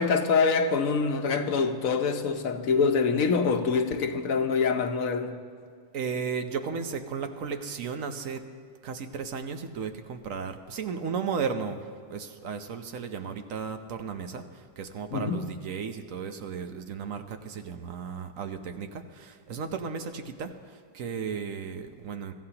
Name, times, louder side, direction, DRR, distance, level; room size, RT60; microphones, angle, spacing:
voice 1, 0.0-5.4 15.1-15.4, left 5 dB, 90° left, 1.3 m, -25 dB
voice 2, 5.9-8.4 8.8-22.3, right 6 dB, 80° right, 1.3 m, -35 dB
24.5 x 14.5 x 2.9 m
omnidirectional pair, 1.4 m